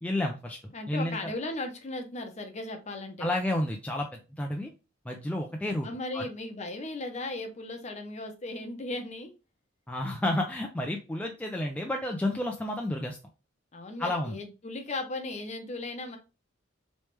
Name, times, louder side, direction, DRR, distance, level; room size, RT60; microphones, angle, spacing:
voice 1, 0.0-0.6 0.9-1.2 3.2-4.7 5.1-5.9 6.1-6.3 9.9-13.2 14.0-14.4, left 1 dB, 5° left, 2 dB, 0.3 m, -31 dB
voice 2, 0.7-3.3 5.6-9.3 13.7-16.2, left 2 dB, 35° left, 5 dB, 0.7 m, -37 dB
3.2 x 3.1 x 3.0 m, 0.30 s
head